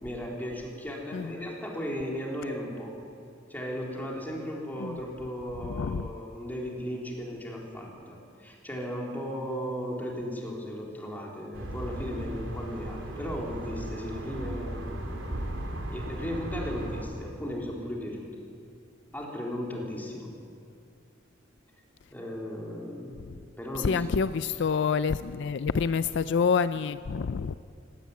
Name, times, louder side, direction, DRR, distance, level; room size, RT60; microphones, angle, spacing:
voice 1, 0.0-2.9 3.5-15.4 15.9-18.3 19.1-20.3 22.1-23.2 23.6-24.2, equal, 10° left, -2 dB, 3.6 m, -36 dB
voice 2, 5.7-6.1 23.8-27.5, left 5 dB, 65° left, 13 dB, 0.4 m, -27 dB
sound 1, 11.5-17.0, right 1 dB, 75° right, 3.1 m, -36 dB
17.0 x 16.5 x 9.5 m, 2.3 s
head